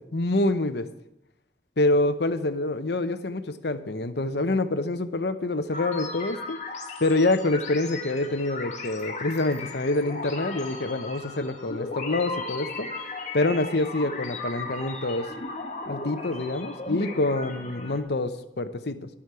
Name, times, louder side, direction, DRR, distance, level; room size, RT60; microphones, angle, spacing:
voice 1, 0.1-0.9 1.8-6.6 7.0-12.9 13.3-15.3 15.9-19.1, left 2 dB, 70° left, 11 dB, 0.9 m, -26 dB
sound 1, 5.7-18.0, left 3 dB, 40° left, 1.7 m, -36 dB
21.0 x 7.3 x 4.8 m, 0.83 s
head